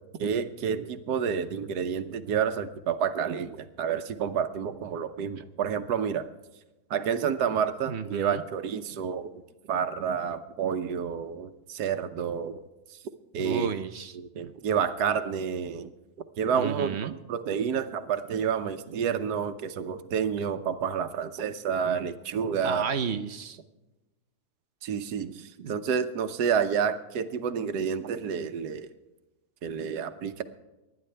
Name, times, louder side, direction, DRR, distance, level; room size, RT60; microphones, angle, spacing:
voice 1, 0.2-6.3 6.9-9.3 9.7-12.6 12.9-13.0 13.3-13.7 14.1-15.9 16.4-22.8 24.8-28.9 29.6-30.4, right 7 dB, 90° right, 9 dB, 1.4 m, -29 dB
voice 2, 7.9-8.4 13.4-14.2 14.4-14.5 16.5-17.1 22.6-23.6 25.6-25.8, right 7 dB, 55° right, 10 dB, 0.9 m, -32 dB
25.0 x 11.0 x 3.3 m, 1.1 s
omnidirectional pair, 1.7 m